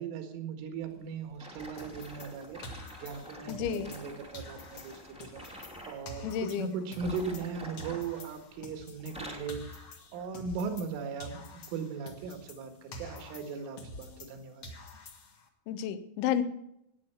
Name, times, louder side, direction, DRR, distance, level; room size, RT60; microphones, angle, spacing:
voice 1, 0.0-9.8 10.1-11.4 11.7-14.6, right 5 dB, 80° right, 7 dB, 4.3 m, -38 dB
sound 1, 1.4-6.0 6.8-8.6 8.9-9.6 10.2-10.4 11.0-11.1, equal, 5° right, 0.7 m, -47 dB
sound 2, 1.8-4.1 4.3-7.5 7.8-10.9 11.2-14.4 14.6-15.5, left 1 dB, 60° left, 1.5 m, -47 dB
voice 2, 3.5-3.9 6.2-6.7 15.7-16.4, left 9 dB, 75° left, 11 dB, 3.2 m, -31 dB
16.0 x 9.7 x 7.1 m, 0.80 s
omnidirectional pair, 5.7 m